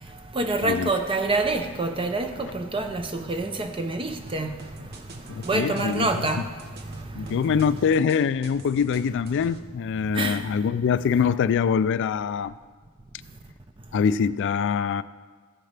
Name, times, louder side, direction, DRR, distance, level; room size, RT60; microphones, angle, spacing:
voice 1, 0.3-4.6 5.3-6.5 6.8-7.1 10.1-10.4, right 2 dB, 25° right, 0.7 m, -27 dB
sound 1, 4.3-9.6, right 3 dB, 50° right, 0.9 m, -46 dB
voice 2, 5.3-6.1 7.1-12.5 13.9-15.0, left 6 dB, 55° left, 0.3 m, -24 dB
15.0 x 9.4 x 3.4 m
head